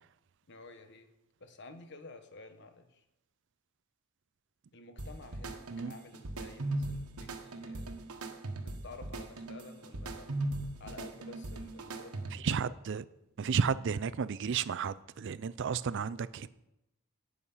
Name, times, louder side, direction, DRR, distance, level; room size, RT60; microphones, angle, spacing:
voice 1, 0.5-1.1 1.4-3.0 4.7-8.0 8.6-10.3 10.8-12.7, left 3 dB, 50° left, 1.3 m, -52 dB
sound 1, 5.0-12.6, right 2 dB, 80° right, 1.3 m, -39 dB
voice 2, 12.3-13.0 13.4-16.5, right 6 dB, 55° right, 0.4 m, -32 dB
17.5 x 6.4 x 5.6 m
head